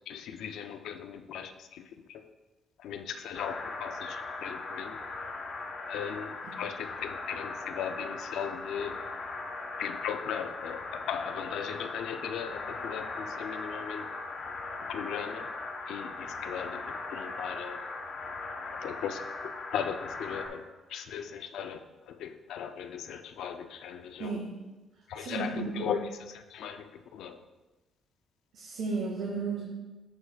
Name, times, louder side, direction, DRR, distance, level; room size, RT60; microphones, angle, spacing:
voice 1, 0.1-2.3 2.8-5.0 5.9-9.1 9.8-14.1 14.8-15.5 15.9-17.9 18.7-24.4 25.1-27.4, left 8 dB, 80° left, 8 dB, 0.4 m, -38 dB
sound 1, 3.3-20.5, left 3 dB, 55° left, 1.0 m, -39 dB
voice 2, 24.2-24.5 25.2-25.9 28.5-29.6, right 4 dB, 75° right, -3 dB, 1.3 m, -33 dB
13.0 x 4.7 x 2.3 m, 1.2 s
cardioid pair, 130°, 0 cm